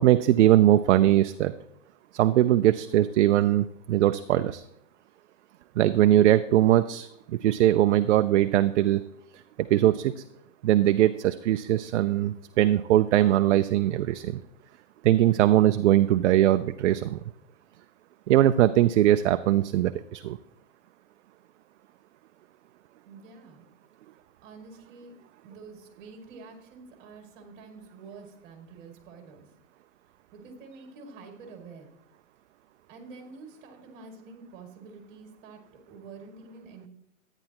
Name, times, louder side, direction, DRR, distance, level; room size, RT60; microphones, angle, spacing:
voice 1, 0.0-1.5 2.1-4.6 5.8-7.1 7.4-9.0 9.7-10.1 10.6-14.4 15.0-17.2 18.3-20.4, right 13 dB, 60° right, 11 dB, 0.5 m, -21 dB
voice 2, 23.0-23.6 24.4-25.1 25.4-29.5 30.3-31.9 32.9-35.6 35.9-36.9, right 4 dB, 35° right, 3 dB, 2.4 m, -47 dB
11.5 x 9.8 x 2.9 m, 0.79 s
hypercardioid pair, 155°, 40 cm